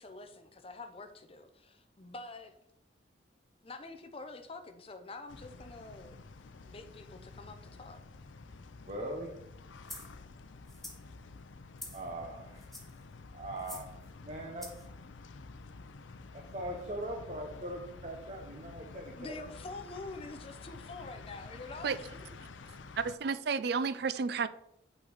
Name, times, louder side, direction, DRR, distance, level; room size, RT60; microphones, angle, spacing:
voice 1, 0.0-2.6 3.6-6.2 6.6-8.0 19.2-22.2, left 3 dB, 30° left, 0.7 m, -46 dB
sound 1, 5.3-23.2, left 3 dB, 85° left, 0.5 m, -50 dB
voice 2, 8.9-9.3 11.9-12.6 13.3-13.9 14.2-14.7 16.3-19.5, right 1 dB, 40° right, 1.1 m, -40 dB
sound 2, 9.9-10.1 10.7-11.0 11.8-12.1 12.6-13.0 13.6-13.9 14.6-14.9, left 1 dB, ahead, 1.0 m, -46 dB
voice 3, 23.0-24.5, right 5 dB, 55° right, 0.4 m, -31 dB
8.7 x 5.7 x 4.1 m
head